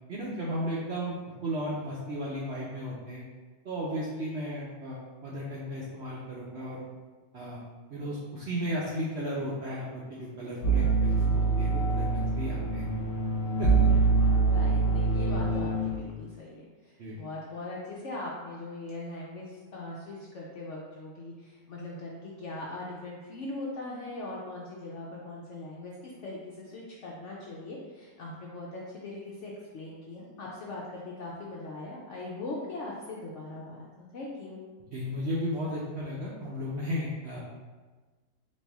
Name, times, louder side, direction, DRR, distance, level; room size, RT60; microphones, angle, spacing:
voice 1, 0.1-1.2 1.4-3.2 3.6-6.9 7.3-7.6 7.9-12.9 13.6-13.9 15.3-15.4 17.0-17.2 34.9-37.4, equal, 65° right, -6 dB, 0.7 m, -34 dB
sound 1, 10.6-15.9, right 4 dB, 40° left, 1.1 m, -25 dB
voice 2, 14.4-34.6, left 2 dB, 65° left, -4 dB, 0.7 m, -40 dB
4.2 x 2.6 x 3.4 m, 1.4 s
omnidirectional pair, 1.7 m